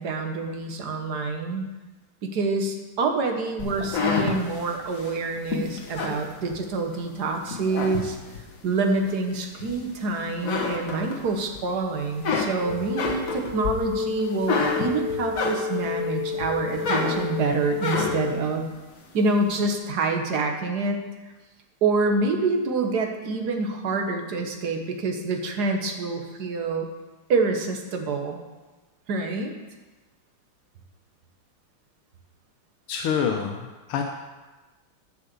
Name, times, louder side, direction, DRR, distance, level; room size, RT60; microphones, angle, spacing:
voice 1, 0.0-1.6 2.2-8.2 8.6-18.7 19.1-21.0 21.8-26.9 27.3-28.4 29.1-29.5, right 3 dB, 55° right, 3 dB, 1.5 m, -26 dB
sound 1, 3.6-7.0 7.4-8.5 9.0-10.0 10.3-11.6 11.9-16.0 16.4-18.4, left 4 dB, 45° left, 1.6 m, -29 dB
sound 2, 12.6-18.4, left 6 dB, 60° left, 3.4 m, -31 dB
voice 2, 32.9-34.0, left 7 dB, 85° left, 2 dB, 1.7 m, -26 dB
11.5 x 5.7 x 6.9 m, 1.2 s
omnidirectional pair, 2.4 m